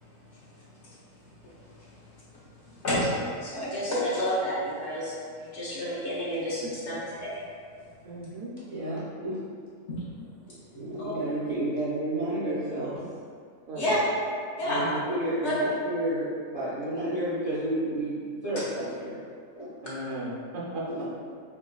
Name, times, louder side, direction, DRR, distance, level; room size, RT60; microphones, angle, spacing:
voice 1, 2.8-3.1 3.4-7.4 9.9-10.0 11.0-11.1 13.8-14.0 14.6-14.8 15.4-15.5, left 1 dB, 55° left, -9 dB, 1.0 m, -30 dB
voice 2, 8.0-8.5 13.7-14.0 19.8-21.2, right 1 dB, 65° right, -6 dB, 0.9 m, -36 dB
voice 3, 8.7-9.4 10.7-13.0 14.6-19.2 19.6-19.7 20.9-21.2, right 1 dB, 25° left, -11 dB, 0.7 m, -31 dB
4.6 x 2.2 x 2.3 m, 2.1 s
omnidirectional pair, 1.5 m